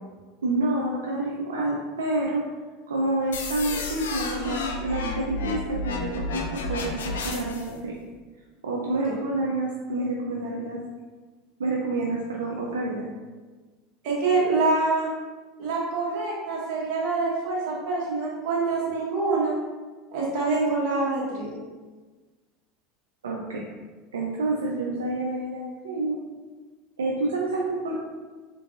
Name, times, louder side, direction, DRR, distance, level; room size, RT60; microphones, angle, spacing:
voice 1, 0.4-2.4 2.9-7.9 8.6-10.8 11.6-13.1 23.2-23.6 24.1-26.2 27.0-27.9, right 2 dB, 85° right, -3 dB, 0.4 m, -28 dB
sound 1, 3.3-7.7, left 3 dB, 80° left, 0.4 m, -31 dB
voice 2, 14.0-15.1 15.6-19.5 20.1-21.6, right 3 dB, 60° right, -5 dB, 1.2 m, -25 dB
3.6 x 2.6 x 2.5 m, 1.3 s
hypercardioid pair, 85°, 0 cm